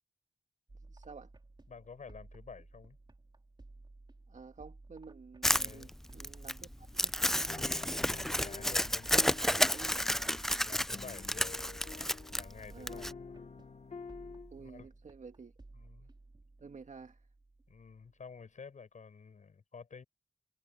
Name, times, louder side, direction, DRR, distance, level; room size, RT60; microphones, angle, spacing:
sound 1, 0.7-18.3, right 2 dB, 40° right, 4.1 m, -56 dB
voice 1, 0.9-1.3 4.3-7.6 9.1-10.1 12.6-13.1 14.5-15.5 16.6-17.2, right 4 dB, 75° right, 2.0 m, -50 dB
voice 2, 1.7-3.0 5.5-5.9 8.0-9.2 10.6-11.6 12.3-13.1 14.5-14.9 15.8-16.1 17.7-20.0, left 5 dB, 90° left, 6.8 m, -50 dB
Crumpling crinkling, 5.4-13.1, equal, 5° left, 0.3 m, -31 dB
sound 2, 7.4-14.8, left 5 dB, 65° left, 1.2 m, -49 dB
wide cardioid pair, 65°, 12 cm